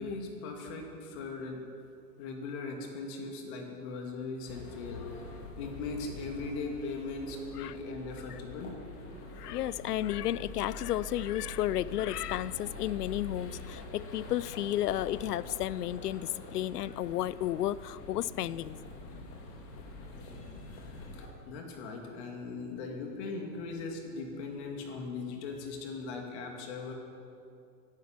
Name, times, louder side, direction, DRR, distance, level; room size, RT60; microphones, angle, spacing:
voice 1, 0.0-1.7 2.2-5.2 5.6-8.8 21.1-26.9, left 3 dB, 45° left, 2 dB, 2.5 m, -39 dB
sound 1, 4.5-21.3, left 2 dB, 30° left, 2.4 m, -45 dB
voice 2, 9.4-18.8, left 13 dB, 70° left, 19 dB, 0.6 m, -32 dB
16.0 x 10.5 x 6.0 m, 2.5 s
hypercardioid pair, 125°, 48 cm